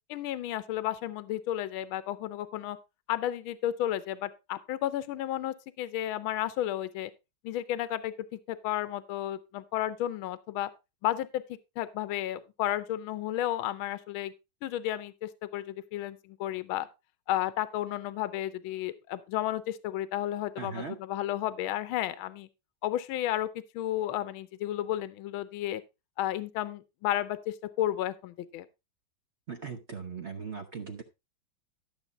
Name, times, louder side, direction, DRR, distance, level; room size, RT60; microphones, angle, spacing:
voice 1, 0.1-2.8 3.1-7.1 7.4-8.1 8.5-10.7 11.0-14.3 14.6-16.9 17.3-22.5 22.8-23.5 23.7-25.8 26.2-28.7, left 13 dB, 80° left, 1.5 m, -32 dB
voice 2, 20.6-21.0 29.5-31.0, right 5 dB, 45° right, 0.9 m, -39 dB
12.5 x 7.0 x 3.9 m
omnidirectional pair, 2.3 m